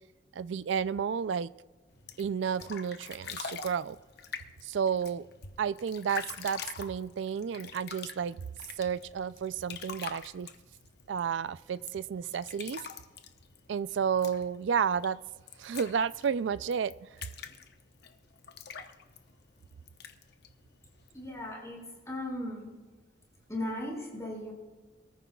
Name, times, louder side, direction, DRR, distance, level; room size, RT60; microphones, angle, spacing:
voice 1, 0.3-1.5 2.2-4.0 4.6-5.3 5.6-8.4 8.8-10.5 11.1-12.8 13.7-15.2 15.6-16.9, right 7 dB, 70° right, 16 dB, 0.4 m, -31 dB
sound 1, 1.9-21.5, left 6 dB, 55° left, 0.9 m, -46 dB
voice 2, 21.1-22.7 23.5-24.5, left 1 dB, 15° left, -2 dB, 5.4 m, -37 dB
24.0 x 14.0 x 2.3 m, 1.3 s
head